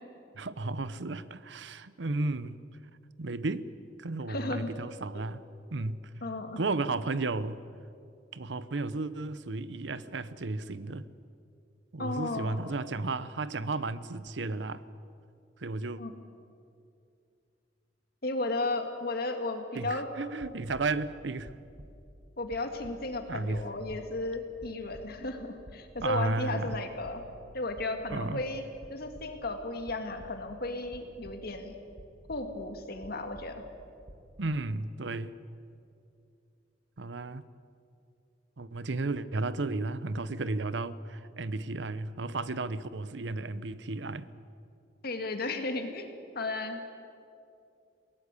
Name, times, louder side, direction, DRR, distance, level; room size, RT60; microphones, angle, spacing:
voice 1, 0.3-2.6 3.2-3.7 4.0-5.4 5.7-6.0 6.6-7.6 8.3-11.0 11.9-14.8 15.6-16.0 19.7-21.6 23.3-23.6 26.0-26.7 28.1-28.4 34.4-35.3 37.0-37.4 38.6-44.3, right 3 dB, 70° right, 0.8 m, -33 dB
voice 2, 4.3-4.7 6.2-6.6 12.0-12.6 16.0-16.1 18.2-20.1 22.4-27.2 27.5-28.6 28.9-31.8 32.3-33.6 45.0-46.9, left 2 dB, 55° left, 2.1 m, -34 dB
sound 1, 20.4-21.0 21.4-22.2 22.5-24.2 24.6-25.4 25.7-26.4 26.7-27.4 27.7-28.4 28.8-29.6 29.8-30.5 30.9-31.7 32.0-32.7 33.0-33.8 34.0-34.3, equal, 50° right, 4.6 m, -51 dB
22.0 x 18.5 x 8.4 m
head